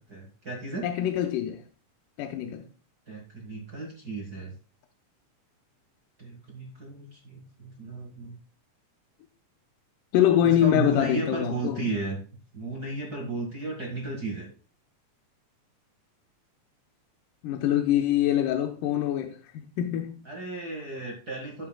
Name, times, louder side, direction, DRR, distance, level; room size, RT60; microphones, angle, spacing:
voice 1, 0.1-0.9 3.1-4.5 6.2-8.4 10.6-12.2 12.5-14.5 20.2-21.7, right 2 dB, 35° right, 1.8 m, -34 dB
voice 2, 0.8-1.6 2.2-2.7 10.1-11.9 17.4-20.2, left 11 dB, 90° left, 2.3 m, -24 dB
11.0 x 8.9 x 2.3 m
omnidirectional pair, 3.7 m